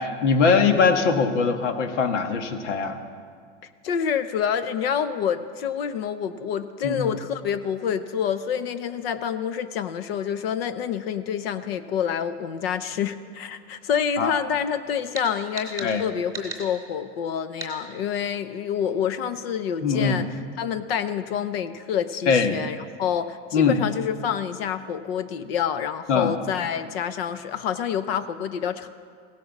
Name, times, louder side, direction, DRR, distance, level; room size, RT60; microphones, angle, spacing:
voice 1, 0.0-3.0 6.8-7.1 14.2-14.3 15.8-16.0 19.8-20.2 22.3-22.6 23.5-23.8 26.1-26.3, left 5 dB, 85° left, 7 dB, 1.6 m, -21 dB
voice 2, 3.8-20.3 20.6-28.9, left 8 dB, 55° left, 12 dB, 0.8 m, -27 dB
sound 1, 15.1-15.3 15.6-15.9 16.3-16.6 17.6-17.7, right 4 dB, 10° right, 2.4 m, -34 dB
16.5 x 10.5 x 7.2 m, 2.1 s
supercardioid pair, 160°, 35 cm